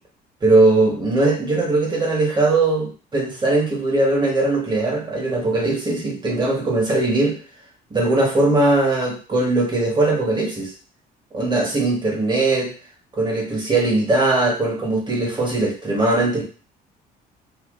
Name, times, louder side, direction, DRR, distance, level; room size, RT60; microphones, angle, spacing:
voice 1, 0.4-7.4 7.9-10.7 11.3-12.7 13.2-16.4, right 2 dB, 25° right, 0 dB, 1.2 m, -20 dB
2.8 x 2.3 x 3.6 m, 0.36 s
cardioid pair, 110°, 17 cm